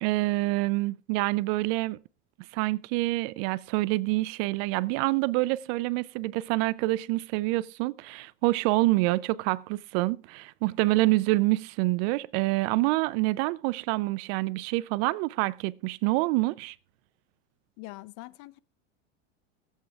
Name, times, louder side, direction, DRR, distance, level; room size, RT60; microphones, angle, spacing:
voice 1, 0.0-2.0 2.5-16.8, right 20 dB, 55° right, 0.5 m, -27 dB
voice 2, 17.8-18.6, left 19 dB, 50° left, 0.7 m, -43 dB
22.0 x 8.1 x 2.4 m
supercardioid pair, 115°, 38 cm